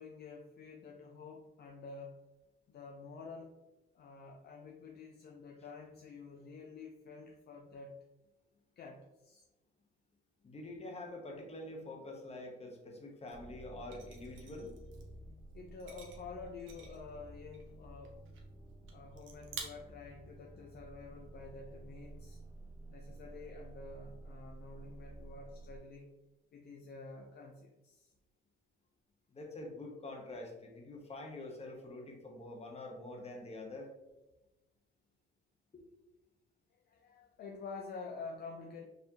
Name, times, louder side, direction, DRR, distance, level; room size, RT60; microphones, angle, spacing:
voice 1, 0.0-2.2 2.7-3.6 3.9-8.0 8.8-9.4 15.5-18.2 18.9-22.4 22.9-26.1 26.5-28.1 36.7-38.8, left 4 dB, 55° left, 2 dB, 0.5 m, -49 dB
voice 2, 10.4-14.8 29.3-33.9 35.7-35.8, left 2 dB, 30° left, 1 dB, 1.0 m, -46 dB
sound 1, 13.3-25.8, right 2 dB, ahead, 1.0 m, -52 dB
sound 2, 13.3-13.4 13.9-15.1 15.7-17.1 17.5-17.7 18.0-18.5 18.9-19.0 19.2-19.6, right 7 dB, 75° right, 0.9 m, -50 dB
4.6 x 3.2 x 2.8 m, 1.0 s
cardioid pair, 90°, 20 cm